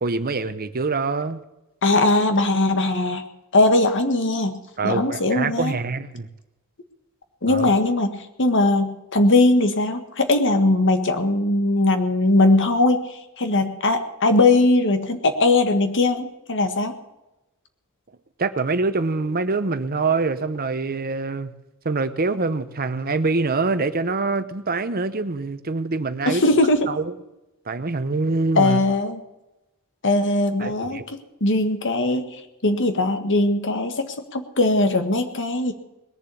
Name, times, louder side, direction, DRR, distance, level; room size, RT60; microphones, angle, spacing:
voice 1, 0.0-1.4 4.8-6.3 7.5-7.7 18.4-21.5 21.8-26.4 26.9-27.1 27.7-28.8 30.6-31.1, right 3 dB, 40° right, 12 dB, 0.9 m, -25 dB
voice 2, 1.8-3.2 3.5-5.8 7.4-16.9 26.2-26.9 28.5-29.2 30.0-32.3 32.6-35.7, left 2 dB, 55° left, 8 dB, 1.6 m, -20 dB
20.0 x 7.4 x 8.4 m, 0.96 s
head